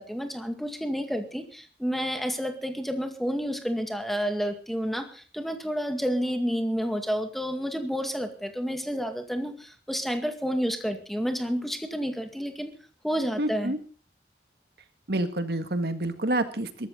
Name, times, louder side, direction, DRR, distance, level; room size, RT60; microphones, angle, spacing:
voice 1, 0.0-12.7 13.0-13.8, equal, ahead, 6 dB, 2.0 m, -30 dB
voice 2, 13.4-13.8 15.1-16.9, right 1 dB, 65° right, 9 dB, 1.9 m, -28 dB
22.0 x 13.5 x 4.0 m, 0.38 s
head